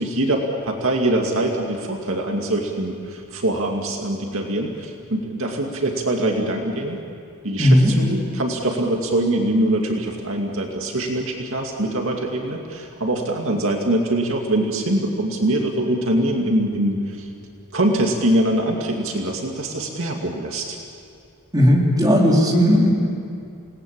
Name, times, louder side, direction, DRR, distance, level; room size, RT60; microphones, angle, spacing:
voice 1, 0.0-7.0 7.4-17.3 17.7-20.8, right 1 dB, 60° right, 1 dB, 2.4 m, -23 dB
voice 2, 7.6-7.9 21.5-22.9, equal, 15° right, -2 dB, 3.7 m, -15 dB
28.5 x 19.0 x 8.8 m, 2.5 s
head